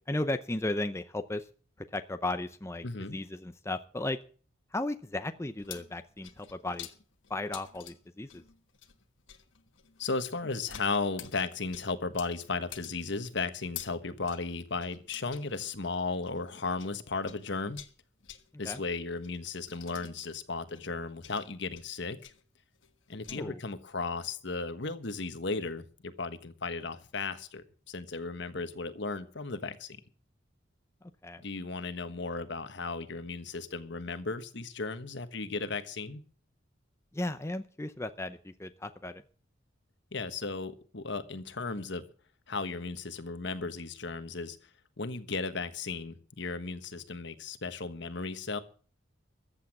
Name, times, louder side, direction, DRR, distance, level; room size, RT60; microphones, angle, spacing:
voice 1, 0.1-1.5 1.8-2.8 3.1-4.2 4.7-6.9 7.3-8.4 18.6-18.8 23.3-23.6 31.0-31.4 37.1-39.2, left 2 dB, 15° left, 9 dB, 0.6 m, -35 dB
voice 2, 2.8-3.2 10.0-17.8 18.6-22.3 23.1-30.0 31.4-36.2 40.1-42.1 42.5-44.6 45.0-48.6, left 3 dB, 65° left, 11 dB, 1.4 m, -35 dB
sound 1, 5.4-17.0 17.2-23.4, left 11 dB, 80° left, 1.4 m, -50 dB
14.5 x 8.4 x 7.3 m, 0.42 s
head